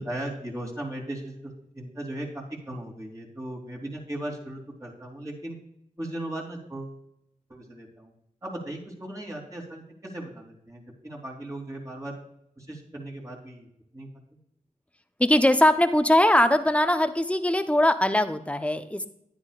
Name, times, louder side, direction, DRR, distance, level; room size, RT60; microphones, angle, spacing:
voice 1, 0.0-5.6 6.0-7.0 7.5-8.1 8.4-12.2 12.6-13.7 13.9-14.1, right 1 dB, 20° right, -2 dB, 3.2 m, -37 dB
voice 2, 15.2-19.1, left 1 dB, 10° left, 9 dB, 0.9 m, -21 dB
10.0 x 9.6 x 2.5 m, 0.74 s
cardioid pair, 45°, 14 cm